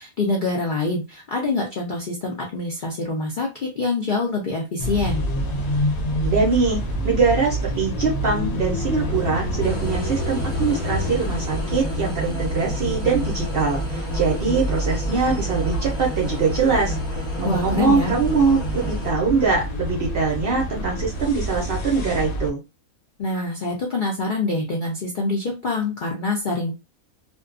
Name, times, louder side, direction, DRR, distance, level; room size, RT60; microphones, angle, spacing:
voice 1, 0.0-5.2 17.4-18.1 23.2-26.7, left 3 dB, 65° left, -1 dB, 0.5 m, -25 dB
sound 1, 4.8-22.5, equal, 80° left, 1.1 m, -27 dB
voice 2, 6.2-6.8 7.0-17.0 17.4-22.6, right 4 dB, 60° right, 0 dB, 0.6 m, -22 dB
sound 2, 9.6-19.1, left 1 dB, 5° left, 0.5 m, -34 dB
2.5 x 2.2 x 2.4 m, 0.26 s
omnidirectional pair, 1.5 m